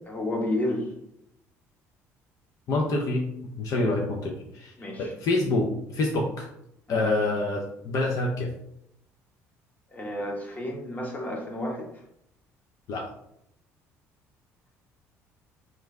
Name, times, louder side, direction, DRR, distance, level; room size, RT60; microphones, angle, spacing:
voice 1, 0.1-0.8 3.8-3.9 4.8-5.0 6.9-7.0 9.9-11.8, left 1 dB, 25° left, -1 dB, 1.1 m, -31 dB
voice 2, 2.7-3.3 3.5-6.5 6.9-8.5 12.9-13.1, left 2 dB, 60° left, 0 dB, 0.5 m, -27 dB
3.1 x 2.5 x 3.2 m, 0.76 s
supercardioid pair, 80°, 6 cm